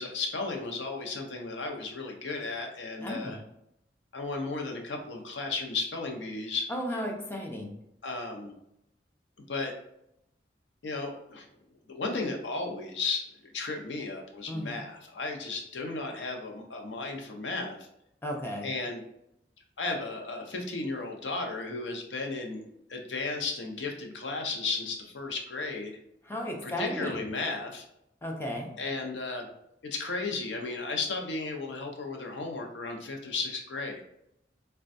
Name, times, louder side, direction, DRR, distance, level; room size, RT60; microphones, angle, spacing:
voice 1, 0.0-3.4 4.1-6.7 8.0-8.5 9.5-9.7 10.8-11.5 11.9-17.8 18.6-19.0 19.8-26.0 26.6-27.8 28.8-29.5 29.8-34.0, left 3 dB, 80° left, 2 dB, 0.6 m, -34 dB
voice 2, 3.0-3.4 6.7-7.7 14.5-14.8 18.2-18.7 26.2-27.2 28.2-28.7, left 1 dB, 15° left, 0 dB, 0.5 m, -34 dB
4.1 x 2.2 x 2.6 m, 0.79 s
head